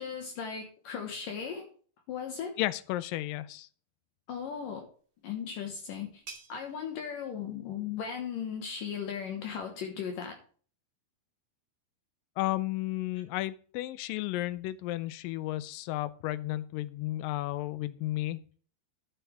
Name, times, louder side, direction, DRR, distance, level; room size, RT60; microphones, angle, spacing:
voice 1, 0.0-1.7 2.1-2.6 4.3-4.9 5.2-6.2 6.5-10.4, left 7 dB, 65° left, 4 dB, 2.7 m, -37 dB
voice 2, 2.6-3.7 12.4-18.5, left 16 dB, 85° left, 15 dB, 2.0 m, -33 dB
sound 1, 4.9-10.3, right 4 dB, 40° right, 1.4 m, -55 dB
12.0 x 7.7 x 3.4 m, 0.43 s
omnidirectional pair, 4.6 m